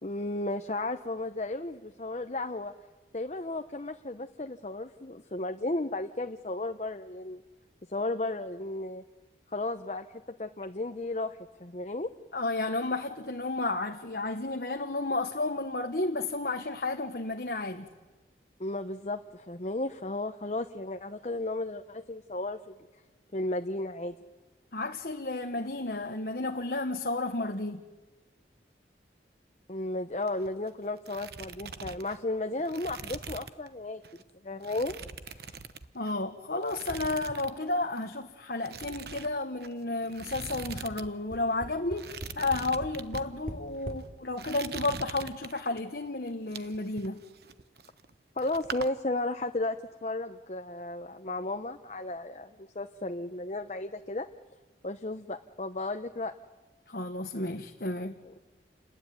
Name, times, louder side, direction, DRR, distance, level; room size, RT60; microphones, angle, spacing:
voice 1, 0.0-2.7 3.1-7.4 7.9-9.0 9.5-10.1 10.4-12.1 18.6-22.7 23.3-24.2 29.7-34.0 34.4-34.9 48.4-54.3 54.8-56.3 58.2-58.4, left 2 dB, 40° left, 0.8 m, -34 dB
voice 2, 12.3-17.9 24.7-27.8 35.9-47.2 56.9-58.2, left 2 dB, 60° left, 1.3 m, -32 dB
sound 1, 30.1-30.7 30.9-33.7 34.0-34.2 34.6-36.2 36.6-37.6 37.8-38.1 38.6-41.1 41.3-41.4 41.9-43.2 43.8-44.0 44.4-45.8 46.3-48.1 48.4-48.9, right 5 dB, 65° right, 1.1 m, -42 dB
Tap, 41.3-44.1 44.9-45.0 45.3-45.4, right 1 dB, 50° right, 3.5 m, -41 dB
29.0 x 20.5 x 9.4 m
head